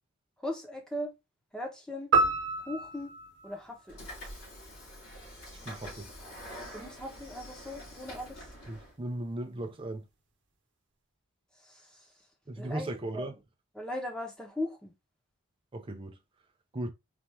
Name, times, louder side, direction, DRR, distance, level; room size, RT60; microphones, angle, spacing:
voice 1, 0.4-1.1 1.5-2.1 2.7-3.1 3.4-4.0 6.7-8.5 11.6-12.1 12.6-13.3 13.7-14.9, left 1 dB, 5° left, 0.9 m, -38 dB
sound 1, 2.1-4.6, right 3 dB, 55° right, 1.0 m, -29 dB
Train / Sliding door, 3.9-8.9, equal, 65° left, 2.4 m, -46 dB
voice 2, 5.6-6.1 8.7-10.0 12.5-13.4 15.7-16.2 16.7-16.9, right 1 dB, 25° right, 0.5 m, -37 dB
4.2 x 2.5 x 3.4 m
head